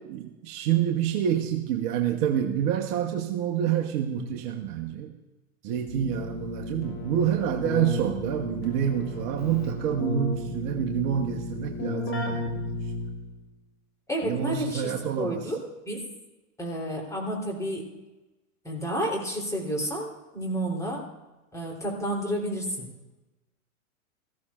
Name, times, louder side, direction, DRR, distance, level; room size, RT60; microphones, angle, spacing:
voice 1, 0.1-5.1 5.6-12.9 14.2-15.5, right 9 dB, 40° right, 3 dB, 1.2 m, -27 dB
Keyboard (musical), 5.9-13.4, left 3 dB, 30° left, 2.8 m, -34 dB
voice 2, 14.1-15.6 15.8-16.1 16.6-17.9 18.6-21.0 21.5-22.9, right 1 dB, 5° left, -2 dB, 3.5 m, -31 dB
18.5 x 14.5 x 2.5 m, 1.1 s
hypercardioid pair, 105°, 43 cm